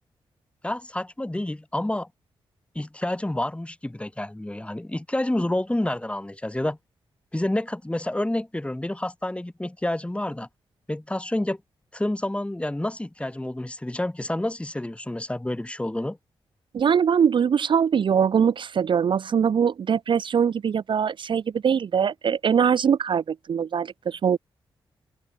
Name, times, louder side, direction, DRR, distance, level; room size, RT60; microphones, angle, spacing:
voice 1, 0.6-2.1 2.8-6.8 7.3-10.5 10.9-11.6 11.9-16.2, left 1 dB, 10° left, 1.7 m, -29 dB
voice 2, 16.7-24.4, right 7 dB, 55° right, 0.5 m, -22 dB
open air
cardioid pair, 60°, 10 cm